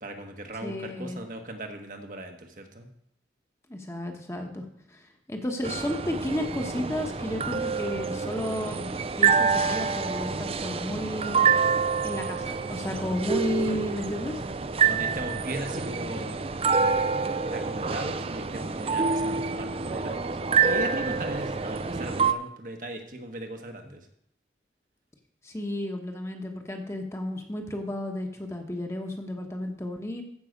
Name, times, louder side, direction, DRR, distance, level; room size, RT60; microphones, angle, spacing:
voice 1, 0.0-2.9 14.9-16.4 16.7-17.0 17.5-24.1, right 1 dB, 50° right, 4 dB, 1.2 m, -38 dB
voice 2, 0.6-1.2 3.7-5.0 5.3-8.9 9.2-11.5 12.0-14.4 25.4-30.2, left 1 dB, 15° left, 3 dB, 1.1 m, -32 dB
sound 1, 5.6-22.3, right 5 dB, 35° right, 0.5 m, -27 dB
14.5 x 5.6 x 5.2 m, 0.69 s
head